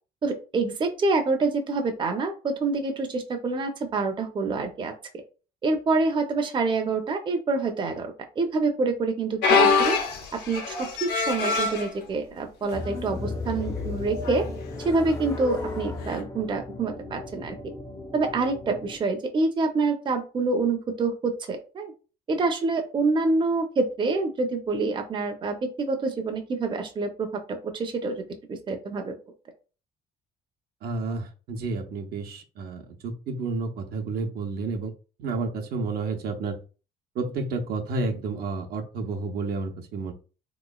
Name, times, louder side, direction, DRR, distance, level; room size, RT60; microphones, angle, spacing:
voice 1, 0.2-4.9 5.6-10.0 10.5-14.5 14.8-17.6 18.1-21.9 22.3-29.2, right 3 dB, 30° right, 4 dB, 0.6 m, -27 dB
sound 1, 9.4-11.9 12.6-12.9 13.2-13.3 14.2-14.5 16.1-16.2, left 5 dB, 90° left, 0.9 m, -23 dB
sound 2, 12.7-19.0, left 3 dB, 20° left, 0.5 m, -35 dB
voice 2, 30.8-34.9 35.2-36.6 37.2-40.1, right 3 dB, 65° right, 4 dB, 0.7 m, -31 dB
3.5 x 3.0 x 2.3 m, 0.35 s
cardioid pair, 110°, 17 cm